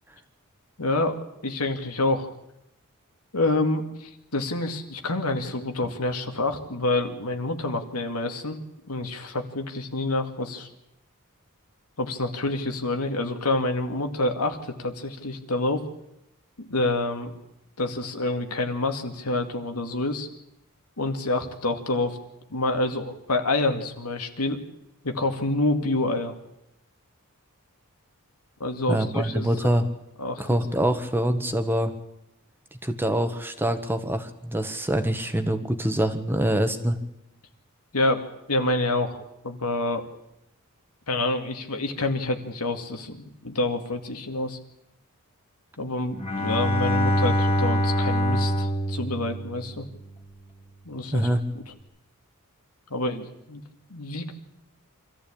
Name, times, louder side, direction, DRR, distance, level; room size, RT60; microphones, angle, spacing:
voice 1, 0.8-2.3 3.3-8.6 8.9-10.7 12.0-15.8 16.6-17.3 17.8-20.3 21.0-22.2 22.5-24.6 25.0-26.3 28.6-29.7 30.2-30.6 37.9-38.2 38.5-40.0 41.1-44.6 45.8-49.8 50.8-51.3 52.9-53.6 53.9-54.3, left 2 dB, 90° left, 5 dB, 2.3 m, -27 dB
voice 2, 28.9-29.9 30.4-31.9 32.8-37.0 51.1-51.4, right 1 dB, 10° right, 7 dB, 1.4 m, -25 dB
Bowed string instrument, 46.1-49.9, equal, 25° left, 2.4 m, -24 dB
25.0 x 14.5 x 8.7 m, 0.85 s
head